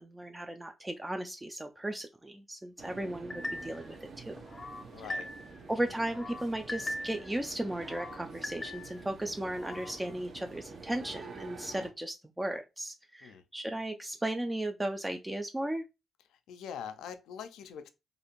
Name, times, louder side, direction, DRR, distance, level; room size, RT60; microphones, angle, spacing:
voice 1, 0.0-4.4 5.7-15.8, right 1 dB, 15° right, 0.3 m, -36 dB
sound 1, 2.8-11.9, right 4 dB, 65° right, 0.6 m, -48 dB
sound 2, 3.3-3.9 4.4-5.6 6.0-7.3 7.7-9.1 9.5-10.0, left 1 dB, 30° left, 0.6 m, -41 dB
voice 2, 4.9-5.3 13.2-13.4 16.3-17.9, left 8 dB, 90° left, 0.3 m, -43 dB
2.5 x 2.4 x 2.9 m
supercardioid pair, 60°, 0 cm